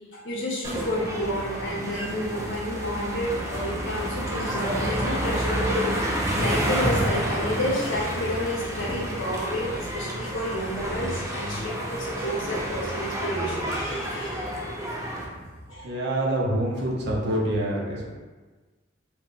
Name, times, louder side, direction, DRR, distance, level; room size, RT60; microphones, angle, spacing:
voice 1, 0.1-5.9 6.4-14.5 15.7-15.9, equal, 75° left, -4 dB, 0.7 m, -30 dB
sound 1, 0.6-15.3, equal, 15° right, 0.4 m, -29 dB
voice 2, 15.3-18.1, right 1 dB, 60° right, -4 dB, 0.6 m, -27 dB
2.1 x 2.1 x 3.7 m, 1.3 s
head